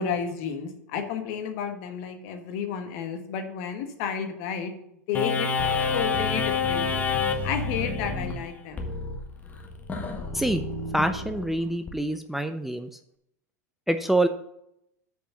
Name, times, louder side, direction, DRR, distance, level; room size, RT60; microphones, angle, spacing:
voice 1, 0.0-4.7 5.1-5.5 5.9-7.0 7.4-8.8, left 7 dB, 55° left, 6 dB, 1.5 m, -31 dB
sound 1, 5.1-11.9, left 4 dB, 20° left, 1.5 m, -29 dB
voice 2, 10.9-12.9 13.9-14.3, right 1 dB, ahead, 7 dB, 0.5 m, -25 dB
6.7 x 5.2 x 7.0 m, 0.78 s
hypercardioid pair, 90°, 9 cm